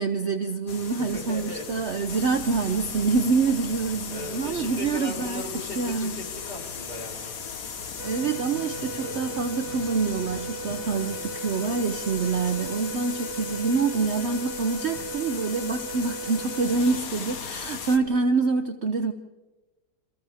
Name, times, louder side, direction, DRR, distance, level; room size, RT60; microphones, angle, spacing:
voice 1, 0.0-5.4 5.8-6.2 8.0-19.1, right 4 dB, 50° right, 8 dB, 1.0 m, -26 dB
sound 1, 0.7-18.0, left 6 dB, 65° left, 1.7 m, -37 dB
voice 2, 1.0-1.7 1.9-2.2 4.1-7.3 8.7-9.3, left 1 dB, 25° left, -1 dB, 4.2 m, -38 dB
sound 2, 8.0-17.0, right 4 dB, 85° right, 3.1 m, -37 dB
29.0 x 27.0 x 3.5 m, 1.2 s
omnidirectional pair, 1.7 m